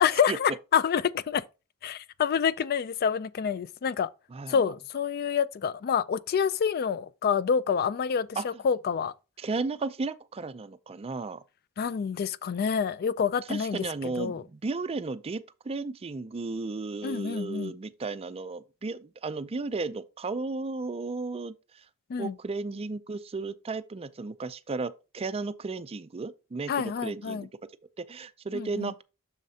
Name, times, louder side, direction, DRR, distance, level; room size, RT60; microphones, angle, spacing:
voice 1, 0.0-1.4 1.8-4.1 4.5-9.1 11.8-14.4 17.0-17.7 22.1-22.4 26.7-27.5 28.5-28.9, left 7 dB, 45° left, 0.3 m, -27 dB
voice 2, 4.3-4.6 8.4-8.5 9.4-11.4 13.5-21.5 22.2-27.5 28.0-29.0, right 3 dB, 25° right, 0.4 m, -34 dB
7.4 x 6.4 x 2.8 m
head